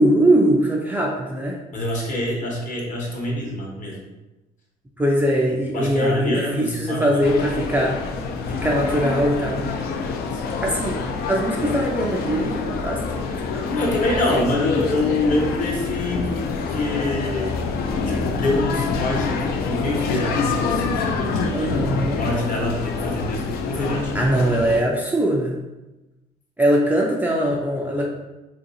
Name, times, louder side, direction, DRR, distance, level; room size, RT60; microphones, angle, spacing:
voice 1, 0.0-1.6 5.0-8.1 8.5-9.6 10.6-11.0 11.3-13.7 21.5-22.2 24.1-25.6 26.6-28.1, right 1 dB, 10° right, -2 dB, 0.4 m, -21 dB
voice 2, 1.7-3.9 5.7-7.1 10.3-10.6 13.7-17.6 18.1-24.3, left 1 dB, 50° left, -2 dB, 1.0 m, -25 dB
sound 1, 7.2-24.8, left 4 dB, 65° left, 0.4 m, -26 dB
3.0 x 2.6 x 2.7 m, 1.0 s
cardioid pair, 110°, 17 cm